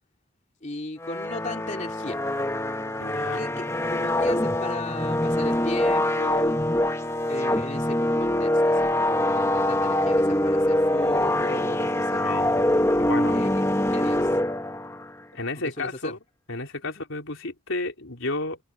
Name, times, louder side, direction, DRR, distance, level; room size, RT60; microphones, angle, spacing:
voice 1, 0.6-2.2 3.3-6.6 7.3-12.3 13.3-13.6 13.9-14.3 15.5-16.1 16.9-17.0, left 2 dB, 35° left, 3.0 m, -36 dB
sound 1, 1.0-15.1, left 1 dB, 15° left, 1.3 m, -24 dB
voice 2, 3.0-3.5 12.1-12.5 13.0-13.4 15.3-16.2 16.5-18.6, left 2 dB, 80° left, 3.7 m, -32 dB
head